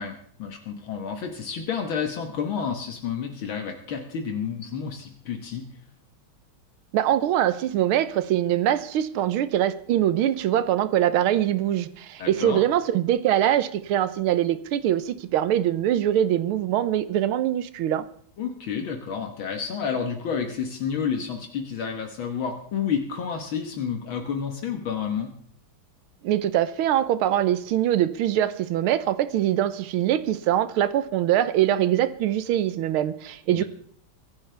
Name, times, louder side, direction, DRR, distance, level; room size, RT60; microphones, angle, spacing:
voice 1, 0.0-5.6 12.2-12.6 18.4-25.3 33.5-33.6, left 7 dB, 70° left, 2.1 m, -30 dB
voice 2, 6.9-18.0 26.2-33.6, right 11 dB, 85° right, 1.6 m, -23 dB
23.0 x 11.5 x 3.4 m
omnidirectional pair, 2.3 m